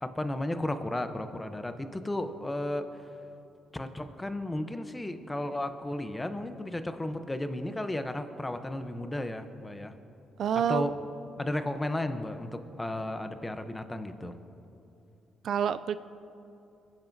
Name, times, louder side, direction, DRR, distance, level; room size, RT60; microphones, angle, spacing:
voice 1, 0.0-2.9 3.7-9.9 10.7-10.9 11.4-14.4, left 1 dB, 15° left, 9 dB, 0.8 m, -34 dB
voice 2, 10.4-10.9 15.4-16.0, right 8 dB, 65° right, 13 dB, 0.3 m, -27 dB
21.0 x 10.5 x 2.7 m, 2.7 s
cardioid pair, 90°, 0 cm